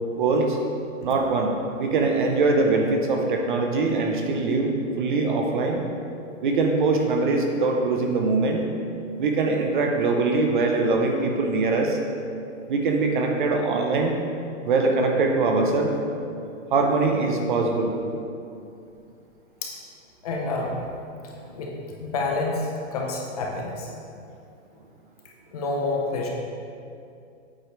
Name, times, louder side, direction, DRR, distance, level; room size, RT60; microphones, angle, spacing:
voice 1, 0.2-0.6 1.0-5.8 6.4-8.6 9.2-12.0 12.7-14.1 14.6-15.9 16.7-17.9, right 3 dB, 40° right, 2 dB, 0.7 m, -22 dB
voice 2, 20.2-20.8 21.2-23.9 25.5-26.3, left 3 dB, 30° left, -1 dB, 0.7 m, -29 dB
8.3 x 4.8 x 4.5 m, 2.5 s
hypercardioid pair, 165°, 39 cm